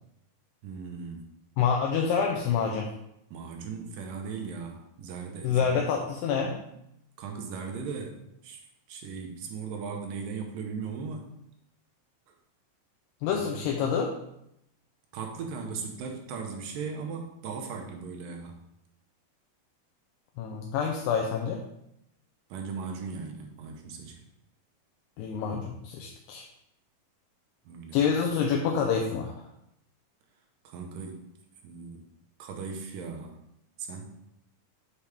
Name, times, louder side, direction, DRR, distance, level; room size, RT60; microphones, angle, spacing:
voice 1, 0.6-1.3 3.3-5.9 6.7-6.8 7.2-8.6 8.9-11.3 13.3-13.6 15.1-18.6 22.5-24.2 27.7-28.0 30.6-31.2 31.6-32.0 32.4-33.4 33.8-34.2, right 5 dB, 80° right, 2 dB, 2.5 m, -38 dB
voice 2, 1.6-2.9 5.4-6.6 13.2-14.1 20.4-21.7 25.2-26.5 27.9-29.3, left 6 dB, 85° left, 1 dB, 2.2 m, -27 dB
7.0 x 4.7 x 3.4 m, 0.81 s
omnidirectional pair, 3.9 m